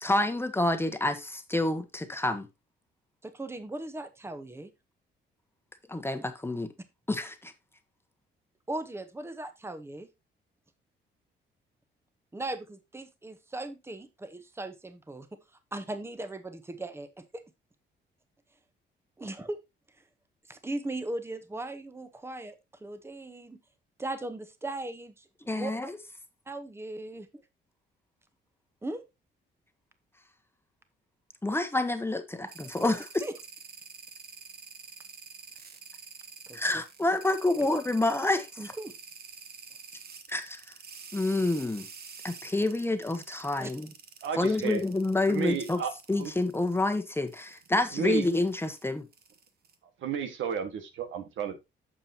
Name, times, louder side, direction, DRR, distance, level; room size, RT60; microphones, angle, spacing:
voice 1, 0.0-2.5 5.9-6.7 7.1-7.5 25.5-25.9 31.4-33.1 36.5-38.5 40.3-40.7 41.1-41.9 42.2-43.9 44.4-45.8 46.1-49.0, left 2 dB, 10° left, 1.2 m, -28 dB
voice 2, 3.2-4.7 8.7-10.1 12.3-15.3 15.7-17.4 19.2-19.6 20.5-23.6 24.0-25.7 26.5-27.4 28.8-29.0 33.2-33.3 36.5-36.8 37.1-37.2 37.6-37.7 38.6-38.9 43.6-43.7, right 2 dB, 10° right, 1.1 m, -38 dB
sound 1, 32.5-47.0 47.3-47.7 48.2-49.7, right 6 dB, 50° right, 1.3 m, -48 dB
voice 3, 44.2-44.8 45.3-46.3 47.9-48.3 50.0-51.6, right 7 dB, 75° right, 1.7 m, -32 dB
8.8 x 6.9 x 2.9 m
cardioid pair, 90°, 20 cm